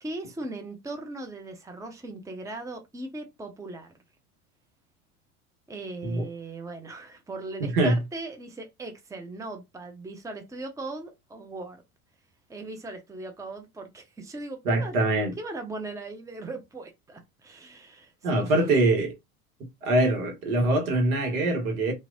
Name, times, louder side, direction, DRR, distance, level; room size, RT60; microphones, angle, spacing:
voice 1, 0.0-3.9 5.7-11.8 12.5-15.0 15.4-18.7, right 2 dB, 5° right, 0.7 m, -39 dB
voice 2, 14.6-15.3 18.2-19.1 19.8-21.9, right 2 dB, 75° right, 1.4 m, -23 dB
3.0 x 2.7 x 2.5 m
hypercardioid pair, 75°, 43 cm